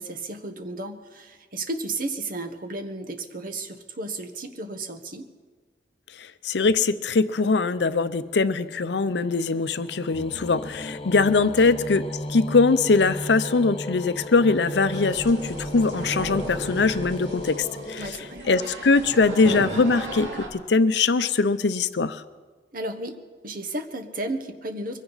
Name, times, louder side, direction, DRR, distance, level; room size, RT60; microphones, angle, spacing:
voice 1, 0.0-5.3 11.4-11.7 18.0-18.4 22.7-23.1 23.4-25.0, right 2 dB, 50° right, 7 dB, 1.2 m, -33 dB
voice 2, 6.2-12.0 12.3-18.0 18.5-22.2, left 4 dB, 70° left, 13 dB, 0.6 m, -22 dB
sound 1, 7.9-18.8, left 1 dB, 35° left, 1.0 m, -36 dB
sound 2, 14.9-20.5, right 1 dB, 90° right, 2.8 m, -36 dB
22.5 x 15.5 x 4.1 m, 1.5 s
head